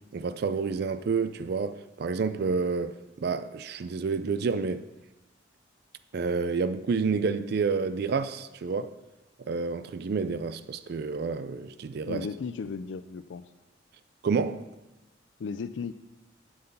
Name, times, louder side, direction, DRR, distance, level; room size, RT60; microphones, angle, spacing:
voice 1, 0.1-4.9 6.1-8.9 9.4-12.3 14.2-14.7, right 5 dB, 55° right, 0.4 m, -29 dB
voice 2, 12.1-13.5 15.4-15.9, left 5 dB, 75° left, 0.4 m, -35 dB
7.9 x 7.8 x 5.3 m
head